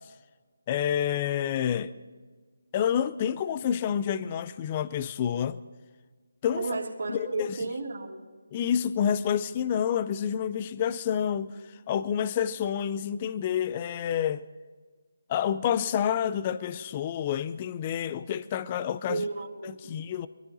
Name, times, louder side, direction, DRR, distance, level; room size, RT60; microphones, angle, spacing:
voice 1, 0.7-1.9 2.7-5.6 6.4-6.7 7.1-7.6 8.5-14.4 15.3-19.2 19.6-20.3, left 9 dB, 25° left, 0.5 m, -28 dB
voice 2, 6.6-8.1 19.1-19.9, right 3 dB, 55° right, 3.1 m, -33 dB
22.0 x 13.5 x 4.0 m
figure-of-eight pair, 155°, 0 cm